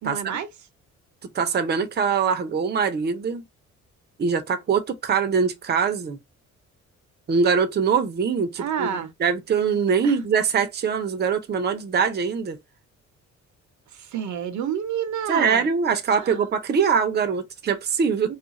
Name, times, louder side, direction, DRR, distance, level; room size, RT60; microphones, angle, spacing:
voice 1, 0.0-0.5 8.6-9.1 10.0-10.2 13.9-15.7 16.1-16.5 18.3-18.4, right 8 dB, 70° right, 0.7 m, -29 dB
voice 2, 1.3-3.4 4.2-6.2 7.3-12.6 15.3-18.3, right 6 dB, 35° right, 0.7 m, -23 dB
2.4 x 2.3 x 4.0 m
cardioid pair, 90°, 30 cm